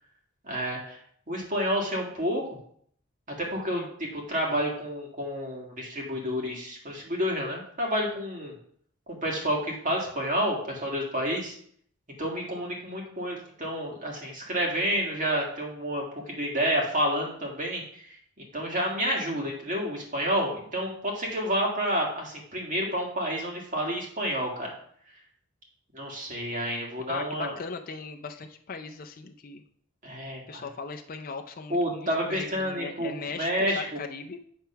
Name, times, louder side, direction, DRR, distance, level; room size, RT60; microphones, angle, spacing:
voice 1, 0.4-1.0 1.3-2.5 3.4-8.5 9.1-11.6 12.2-18.2 18.5-24.7 25.9-27.5 30.0-30.7 31.7-34.0, equal, 35° right, -1 dB, 1.8 m, -29 dB
voice 2, 27.1-29.6 30.5-34.4, left 4 dB, 40° left, 4 dB, 0.5 m, -38 dB
8.6 x 3.5 x 5.6 m, 0.63 s
head